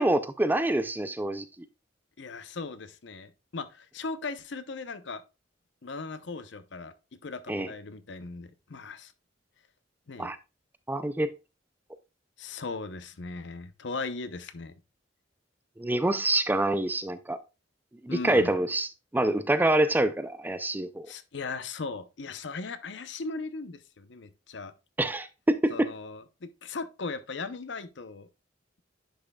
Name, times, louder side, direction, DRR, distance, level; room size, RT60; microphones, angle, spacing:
voice 1, 0.0-1.4 7.5-7.7 10.2-10.4 10.9-11.3 15.8-17.4 18.0-21.1 25.0-25.9, right 1 dB, 10° right, 0.4 m, -26 dB
voice 2, 2.2-5.2 5.8-6.9 7.2-9.1 10.1-10.3 12.4-14.7 18.1-18.5 21.1-24.7 25.7-28.3, left 4 dB, 65° left, 0.7 m, -38 dB
10.0 x 5.6 x 2.3 m
head